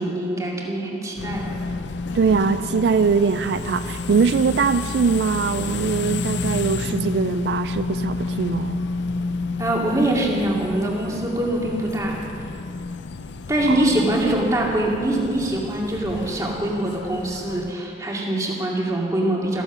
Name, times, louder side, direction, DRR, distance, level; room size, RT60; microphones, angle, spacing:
voice 1, 0.0-1.6 9.6-12.2 13.5-19.6, right 1 dB, 20° right, -2 dB, 2.3 m, -23 dB
sound 1, 1.2-17.7, left 3 dB, 90° left, 0.6 m, -30 dB
voice 2, 2.1-8.8 13.7-13.8, right 5 dB, 75° right, 12 dB, 0.4 m, -21 dB
14.5 x 14.5 x 6.1 m, 2.7 s
head